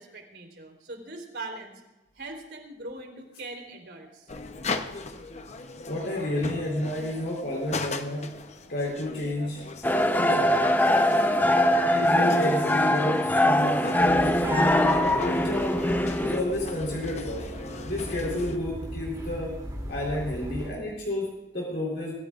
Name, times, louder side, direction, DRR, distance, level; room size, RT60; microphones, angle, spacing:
voice 1, 0.0-1.8 2.2-4.3, right 2 dB, 70° right, 3 dB, 3.7 m, -41 dB
sound 1, 4.3-18.6, left 3 dB, 40° left, 0.9 m, -38 dB
voice 2, 5.9-8.3 8.7-9.6 10.2-10.6 11.9-15.7 16.2-17.5 17.8-19.5 19.9-22.1, left 1 dB, 65° left, -3 dB, 3.9 m, -31 dB
sound 2, 9.8-16.4, left 1 dB, 10° left, 0.8 m, -22 dB
sound 3, 14.0-20.7, equal, 20° right, 2.8 m, -36 dB
23.0 x 15.5 x 2.5 m, 1.0 s
head